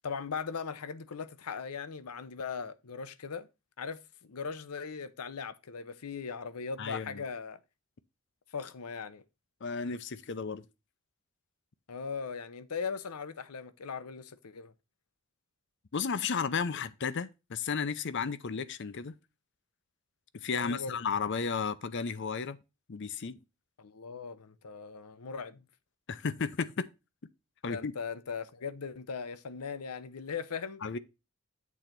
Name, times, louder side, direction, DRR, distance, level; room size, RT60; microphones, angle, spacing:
voice 1, 0.0-3.5 3.8-7.6 8.5-9.2 11.9-14.7 20.5-21.0 23.8-25.7 27.7-30.8, left 5 dB, 85° left, 0.7 m, -39 dB
voice 2, 6.8-7.2 9.6-10.6 15.9-19.1 20.4-22.6 22.9-23.4 26.1-26.8 27.6-27.9 30.8-31.0, left 5 dB, 55° left, 0.6 m, -33 dB
8.4 x 3.9 x 5.8 m
head